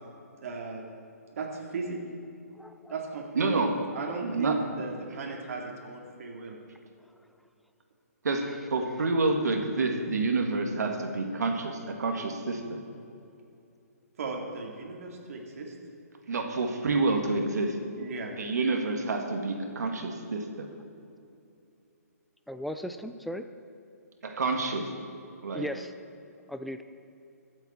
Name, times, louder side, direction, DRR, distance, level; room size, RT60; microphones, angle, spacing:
voice 1, 0.4-0.8 1.3-2.0 2.9-6.6 14.2-15.7 18.0-18.3, right 4 dB, 55° right, 0 dB, 2.2 m, -36 dB
voice 2, 2.6-2.9 22.5-23.5 25.5-25.9 26.5-26.8, equal, ahead, 9 dB, 0.3 m, -36 dB
voice 3, 3.4-3.7 4.2-4.6 8.2-12.8 16.3-17.8 18.4-20.7 24.2-24.9 25.4-25.7, right 3 dB, 75° right, 3 dB, 2.0 m, -28 dB
22.0 x 7.9 x 4.4 m, 2.7 s
hypercardioid pair, 150°, 9 cm